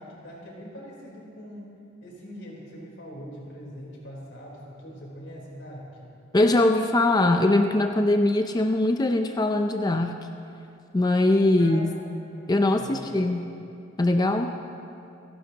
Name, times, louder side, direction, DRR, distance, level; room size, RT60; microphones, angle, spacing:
voice 1, 0.0-1.7 2.0-6.1 11.4-11.8 12.3-13.4, equal, 90° left, -4 dB, 3.8 m, -42 dB
voice 2, 6.3-10.2 10.9-11.9 12.5-13.5 14.0-14.6, left 2 dB, 20° left, 5 dB, 0.5 m, -22 dB
28.5 x 11.0 x 2.9 m, 2.6 s
head